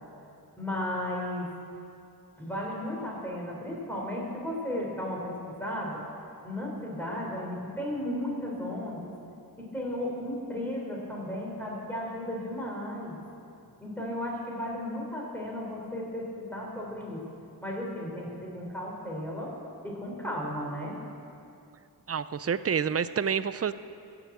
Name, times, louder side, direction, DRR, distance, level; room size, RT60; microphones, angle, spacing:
voice 1, 0.6-1.5 2.4-6.0 6.4-9.1 9.6-13.2 13.8-17.2 17.6-19.5 19.8-20.9, left 1 dB, 5° left, -3 dB, 4.0 m, -34 dB
voice 2, 22.1-23.7, right 7 dB, 40° right, 14 dB, 0.5 m, -28 dB
17.0 x 6.9 x 8.7 m, 2.6 s
wide cardioid pair, 45°, 38 cm